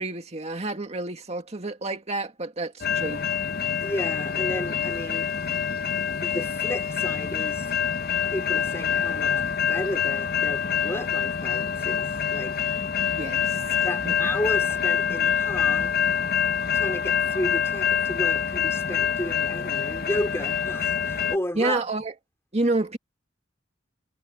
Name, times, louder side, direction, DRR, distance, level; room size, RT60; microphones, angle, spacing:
voice 1, 0.0-3.2 13.2-14.1 21.6-22.1 22.5-23.0, right 2 dB, 35° right, 2.1 m, -29 dB
sound 1, 2.8-21.4, left 7 dB, 55° left, 1.1 m, -26 dB
voice 2, 3.8-5.3 6.2-7.7 8.3-9.4 9.7-12.7 13.8-15.9 16.7-21.8, left 1 dB, 15° left, 3.9 m, -33 dB
head